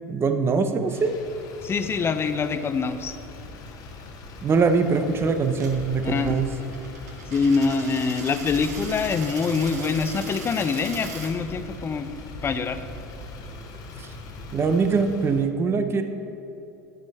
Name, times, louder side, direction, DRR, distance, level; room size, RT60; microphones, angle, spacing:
voice 1, 0.1-1.2 4.4-6.5 14.0-14.1 14.5-16.0, right 4 dB, 30° right, 8 dB, 0.7 m, -22 dB
Motor vehicle (road), 0.8-15.5, left 2 dB, 45° left, 1.0 m, -41 dB
voice 2, 1.6-3.1 6.0-6.4 7.3-12.1 12.4-12.8, left 5 dB, 30° left, 11 dB, 0.6 m, -25 dB
Coin (dropping), 5.5-11.3, right 4 dB, 80° right, 1.2 m, -40 dB
11.0 x 6.1 x 4.2 m, 2.9 s
hypercardioid pair, 80°, 9 cm